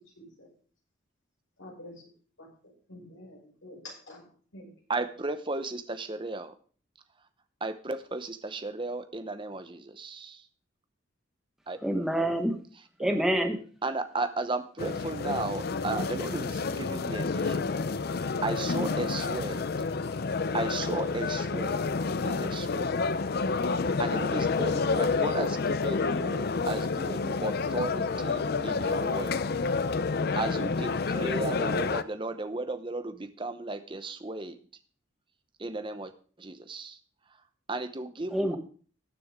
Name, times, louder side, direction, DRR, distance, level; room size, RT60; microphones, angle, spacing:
voice 1, 0.2-0.5 1.6-1.9 2.4-4.3 4.5-4.7, left 1 dB, 85° left, -2 dB, 5.8 m, -48 dB
voice 2, 4.9-6.5 7.6-10.4 11.7-11.8 13.8-17.7 18.4-19.7 20.5-21.9 22.2-23.0 23.8-29.4 30.3-34.6 35.6-36.1 36.4-37.0 37.7-38.6, right 2 dB, 25° right, 9 dB, 0.8 m, -35 dB
voice 3, 11.8-12.6 13.0-13.6 38.3-38.6, right 1 dB, ahead, 4 dB, 1.2 m, -27 dB
sound 1, 14.8-32.0, left 4 dB, 50° left, 0.5 m, -29 dB
19.0 x 6.9 x 3.6 m, 0.43 s
head